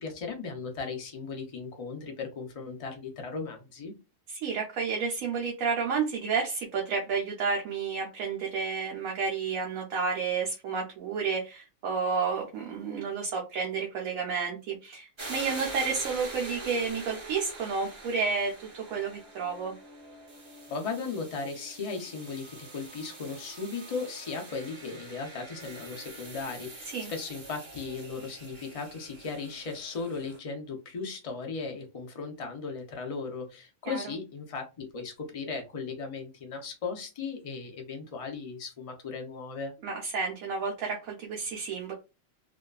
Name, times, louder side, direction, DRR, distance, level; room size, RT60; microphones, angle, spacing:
voice 1, 0.0-3.9 20.7-39.7, left 4 dB, 55° left, 2 dB, 0.4 m, -37 dB
voice 2, 4.3-19.7 26.9-27.1 33.9-34.0 39.8-41.9, right 5 dB, 80° right, -1 dB, 1.0 m, -31 dB
sound 1, 15.2-30.4, right 2 dB, 30° right, 0.6 m, -44 dB
2.6 x 2.3 x 2.3 m, 0.28 s
omnidirectional pair, 1.4 m